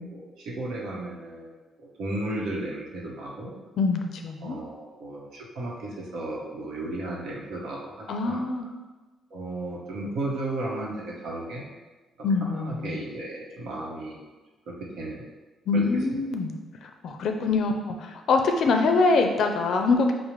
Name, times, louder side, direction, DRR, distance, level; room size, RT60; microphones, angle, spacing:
voice 1, 0.0-3.5 4.4-8.4 9.3-11.7 12.4-14.2 14.7-15.2 15.7-16.0, right 2 dB, 75° right, -3 dB, 0.8 m, -34 dB
voice 2, 3.8-4.6 8.1-8.6 12.2-13.0 15.7-16.5 17.0-17.9 18.3-20.1, left 3 dB, 70° left, 4 dB, 0.4 m, -24 dB
4.9 x 2.0 x 3.0 m, 1.2 s
cardioid pair, 90°, 0 cm